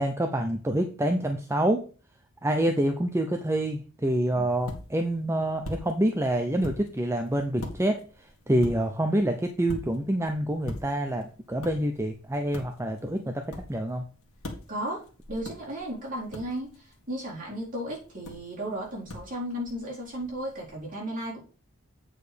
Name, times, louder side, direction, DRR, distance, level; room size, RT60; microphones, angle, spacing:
voice 1, 0.0-1.8 2.4-14.0, right 1 dB, 10° right, 5 dB, 0.6 m, -27 dB
sound 1, 4.0-20.8, left 1 dB, 80° left, 1.9 m, -45 dB
voice 2, 14.7-15.0 15.3-21.4, right 1 dB, 40° right, -4 dB, 4.3 m, -35 dB
8.7 x 4.8 x 5.1 m, 0.37 s
head